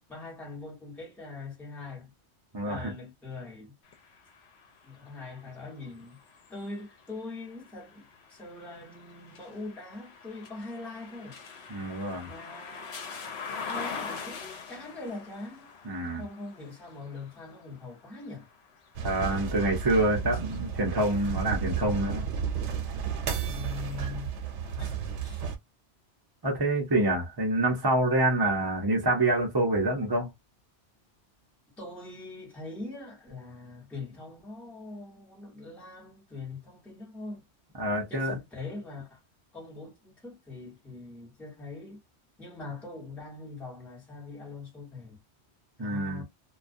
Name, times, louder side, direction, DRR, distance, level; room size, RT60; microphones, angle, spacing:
voice 1, 0.1-2.1 2.6-3.7 4.8-6.2 6.5-11.4 12.3-13.2 13.5-15.7 16.2-18.5 23.4-24.5 24.8-25.4 31.8-37.4 38.1-39.2 39.5-42.0 42.4-45.2 45.8-46.2, left 3 dB, ahead, 0.9 m, -42 dB
voice 2, 2.5-2.9 11.7-12.3 15.9-16.2 19.0-22.3 26.4-30.3 37.8-38.4 45.8-46.2, right 1 dB, 25° right, 0.6 m, -27 dB
sound 1, 3.8-19.8 20.3-21.6, left 5 dB, 70° left, 0.9 m, -44 dB
sound 2, 18.9-25.6, right 7 dB, 85° right, 0.9 m, -33 dB
2.3 x 2.3 x 2.5 m
omnidirectional pair, 1.2 m